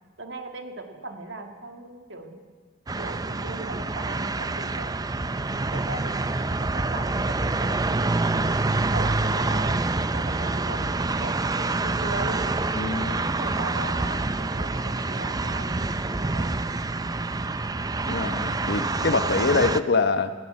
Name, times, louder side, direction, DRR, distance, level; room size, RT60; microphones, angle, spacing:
voice 1, 0.2-2.4 3.0-5.0 5.4-9.8 10.1-12.4 13.0-16.6, right 2 dB, 60° right, 4 dB, 2.2 m, -39 dB
sound 1, 2.9-19.8, right 3 dB, 20° right, 0.5 m, -27 dB
voice 2, 12.7-13.3 18.0-20.3, left 3 dB, 55° left, 10 dB, 1.1 m, -25 dB
19.5 x 16.5 x 8.1 m, 1.4 s
head